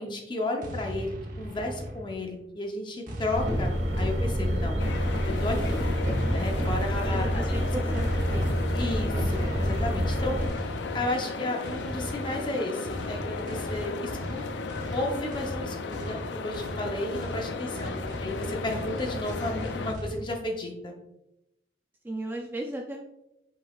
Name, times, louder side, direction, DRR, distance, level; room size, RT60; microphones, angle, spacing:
voice 1, 0.0-4.8 5.2-5.8 6.3-7.6 8.7-10.4 10.9-14.4 14.9-20.9, left 1 dB, 25° left, 2 dB, 0.7 m, -33 dB
sound 1, 0.6-2.4 3.1-4.8 5.5-7.1 7.9-20.2, equal, 50° right, 0.8 m, -38 dB
sound 2, 3.3-10.5, equal, 85° right, 1.4 m, -27 dB
sound 3, 4.8-19.9, left 4 dB, 80° left, 0.4 m, -36 dB
voice 2, 6.8-8.5 17.7-18.1 22.0-23.0, right 1 dB, 10° right, 1 dB, 0.3 m, -36 dB
5.7 x 3.9 x 2.3 m, 0.89 s
head